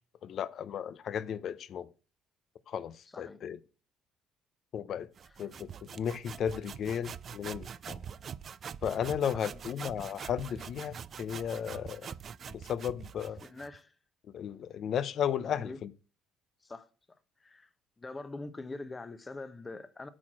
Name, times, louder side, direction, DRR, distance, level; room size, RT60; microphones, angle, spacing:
voice 1, 0.2-1.9 2.7-3.6 4.7-5.1 5.4-8.0 8.8-12.1 12.5-13.4 14.3-15.9, left 9 dB, 50° left, 0.6 m, -34 dB
Hand saw, 5.2-13.8, right 7 dB, 40° right, 0.4 m, -44 dB
voice 2, 13.4-13.9 15.5-15.8 16.6-16.9 17.4-17.7 18.0-20.1, left 2 dB, 20° left, 0.9 m, -43 dB
8.6 x 4.6 x 7.4 m
cardioid pair, 135°, 0 cm